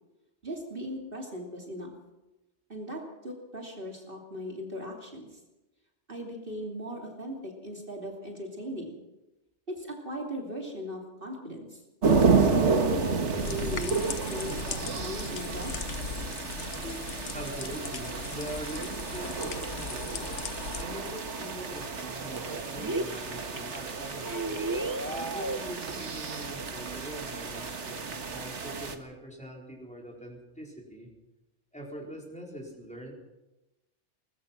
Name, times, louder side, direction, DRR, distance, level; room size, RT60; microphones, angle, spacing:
voice 1, 0.4-1.9 2.7-5.4 6.1-9.0 9.7-11.8 12.4-15.9, equal, 50° right, 0 dB, 3.2 m, -38 dB
sound 1, 12.0-29.0, right 4 dB, 80° right, 1.9 m, -31 dB
sound 2, 13.4-20.8, left 6 dB, 85° left, 1.4 m, -39 dB
voice 2, 17.3-20.2 20.7-24.6 25.0-31.1 31.7-33.1, equal, 5° left, -1 dB, 4.5 m, -42 dB
sound 3, 21.4-21.5 21.7-22.4 22.7-23.3 23.5-23.8 24.2-25.9 26.2-26.3 26.5-26.7, right 2 dB, 20° right, 1.1 m, -33 dB
22.0 x 20.0 x 6.1 m, 1.0 s
omnidirectional pair, 1.2 m